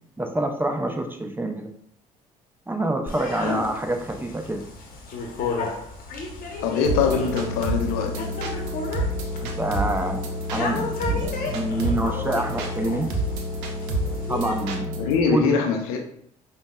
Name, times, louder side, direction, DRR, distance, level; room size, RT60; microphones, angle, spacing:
voice 1, 0.2-1.7 2.7-4.6 9.4-10.2 10.5-13.1 13.9-15.0 15.3-15.6, right 1 dB, 10° right, 4 dB, 0.5 m, -27 dB
sound 1, 3.1-14.6, left 4 dB, 50° left, 0.8 m, -34 dB
voice 2, 6.6-8.3 15.0-16.0, left 6 dB, 75° left, 3 dB, 0.5 m, -23 dB
sound 2, 6.8-15.2, equal, 70° right, 0.6 m, -29 dB
5.1 x 2.1 x 2.3 m, 0.65 s
hypercardioid pair, 50°, 19 cm